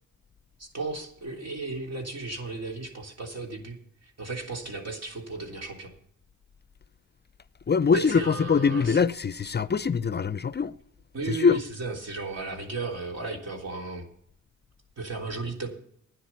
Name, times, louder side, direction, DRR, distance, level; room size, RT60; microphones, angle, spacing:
voice 1, 0.6-5.9 7.9-9.0 11.1-14.1 15.0-15.7, right 3 dB, 60° right, 3.5 m, -35 dB
voice 2, 7.7-10.7 11.3-11.6, left 5 dB, 35° left, 0.5 m, -23 dB
12.0 x 9.9 x 5.9 m
cardioid pair, 55°, 30 cm